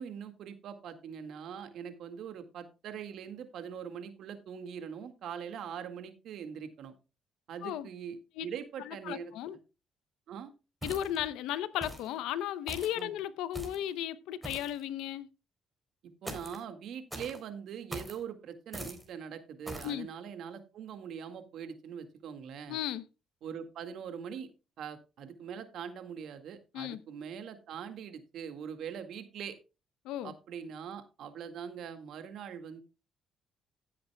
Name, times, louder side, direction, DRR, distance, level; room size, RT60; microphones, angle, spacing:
voice 1, 0.0-6.9 7.5-9.3 10.3-10.5 12.9-13.1 16.2-22.8 23.4-24.5 24.8-29.6 30.2-32.8, right 7 dB, 70° right, 1.9 m, -42 dB
voice 2, 8.9-9.6 10.8-15.3 19.8-20.1 22.7-23.0 26.7-27.0 30.0-30.3, left 11 dB, 85° left, 0.8 m, -35 dB
sound 1, 10.8-11.3 11.8-12.1 12.7-13.0 13.5-13.9 14.4-14.8 16.2-16.6 17.1-17.4 17.9-18.2 18.7-19.1 19.6-19.9, right 1 dB, 10° right, 3.9 m, -42 dB
16.0 x 8.5 x 2.3 m
cardioid pair, 80°, 0 cm